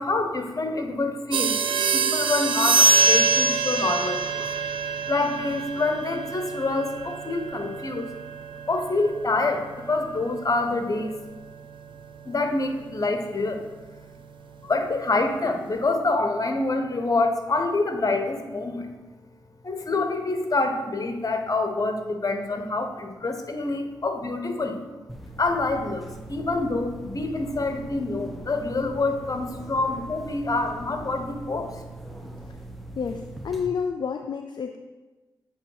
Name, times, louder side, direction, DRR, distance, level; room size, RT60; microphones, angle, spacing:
voice 1, 0.0-4.5 5.1-8.1 8.7-11.2 12.2-13.6 14.6-18.9 19.6-24.9 25.4-31.8, left 3 dB, 40° left, 6 dB, 1.0 m, -26 dB
sound 1, 1.3-11.5, right 4 dB, 75° right, 0.4 m, -25 dB
sound 2, 25.1-33.7, right 2 dB, ahead, 0.9 m, -41 dB
voice 2, 33.0-34.8, left 6 dB, 60° left, 5 dB, 0.4 m, -29 dB
8.0 x 3.1 x 5.4 m, 1.2 s
supercardioid pair, 45°, 9 cm